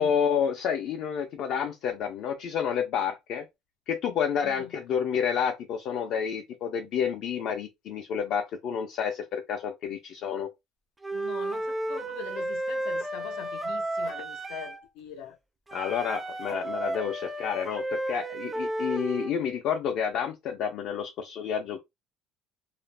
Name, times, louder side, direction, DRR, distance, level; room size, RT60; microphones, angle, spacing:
voice 1, 0.0-3.5 3.9-10.5 15.7-21.8, left 7 dB, 50° left, 0.4 m, -29 dB
Wind instrument woodwind instrument, 11.0-14.8 15.7-19.3, right 1 dB, 10° right, 0.4 m, -33 dB
voice 2, 11.1-15.4, left 8 dB, 90° left, 0.7 m, -43 dB
2.4 x 2.0 x 3.2 m
cardioid pair, 155°, 0 cm